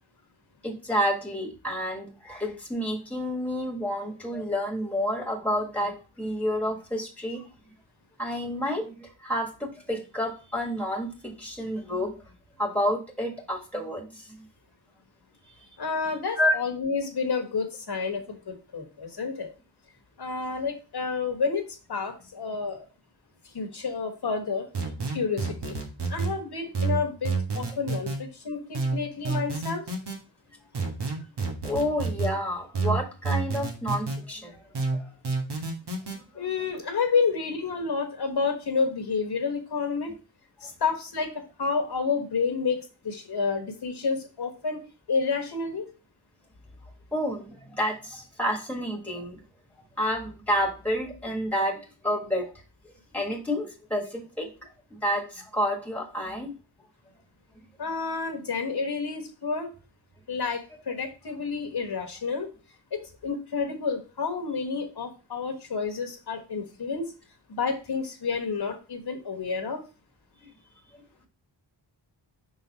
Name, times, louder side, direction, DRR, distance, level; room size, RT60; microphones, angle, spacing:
voice 1, 0.6-7.4 8.2-12.1 12.6-14.4 15.5-15.7 16.4-16.5 31.6-35.1 47.1-49.4 50.0-52.5 52.8-56.5 70.4-70.5, equal, 5° left, 1 dB, 1.6 m, -29 dB
voice 2, 15.8-19.5 20.2-22.9 23.5-24.7 25.1-25.8 26.1-29.9 36.3-40.1 40.6-41.3 41.6-45.9 57.8-59.7 60.3-62.5 62.9-67.1 67.5-69.8, left 5 dB, 60° left, 5 dB, 1.3 m, -30 dB
sound 1, 24.7-26.3 26.7-28.2 28.7-30.2 30.7-32.3 32.7-34.2 34.7-36.2, right 4 dB, 60° right, 1.5 m, -29 dB
5.7 x 4.2 x 4.1 m, 0.33 s
wide cardioid pair, 125°, 44 cm